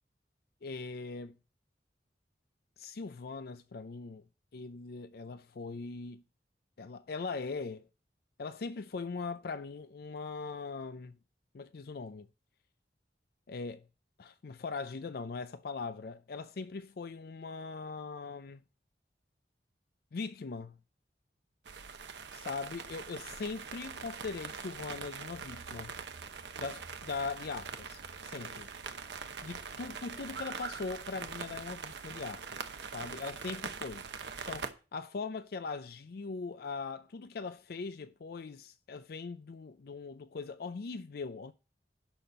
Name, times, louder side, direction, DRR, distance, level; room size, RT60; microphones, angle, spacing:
voice 1, 0.6-1.4 2.8-4.2 4.5-6.2 6.8-7.8 8.4-11.1 11.5-12.3 13.5-13.8 14.2-18.6 20.1-20.8 22.3-26.0 26.6-28.7 29.4-34.0 34.5-41.5, left 4 dB, 55° left, 0.4 m, -40 dB
sound 1, 21.7-34.7, right 5 dB, 80° right, 0.9 m, -43 dB
11.0 x 4.2 x 6.7 m
head